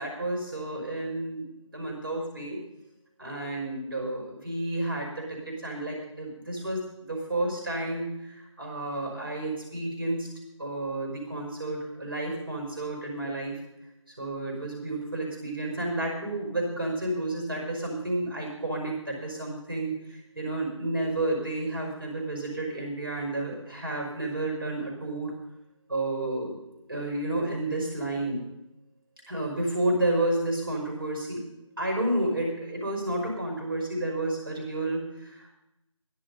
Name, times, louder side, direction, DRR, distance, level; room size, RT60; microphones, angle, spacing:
voice 1, 0.0-1.4 1.7-2.6 3.2-10.3 10.6-13.6 14.2-25.3 25.9-26.6 26.9-28.5 29.3-31.4 31.8-35.5, right 1 dB, 45° right, 0 dB, 5.5 m, -31 dB
16.0 x 11.0 x 5.4 m, 0.87 s
figure-of-eight pair, 170°, 17 cm